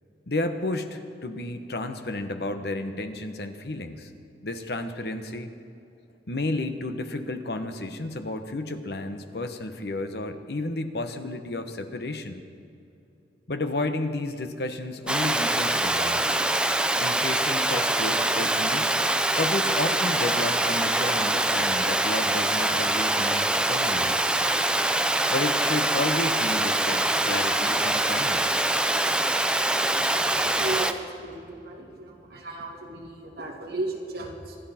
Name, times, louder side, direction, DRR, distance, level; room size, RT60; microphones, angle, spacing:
voice 1, 0.3-4.1 4.4-5.5 6.3-12.4 13.5-16.3 17.0-19.0 19.3-24.4 25.3-28.7, left 2 dB, 65° left, 8 dB, 1.1 m, -32 dB
Water, 15.1-30.9, right 1 dB, 5° right, 0.5 m, -24 dB
voice 2, 30.4-34.6, right 2 dB, 60° right, -1 dB, 2.5 m, -35 dB
26.5 x 11.5 x 4.3 m, 2.6 s
head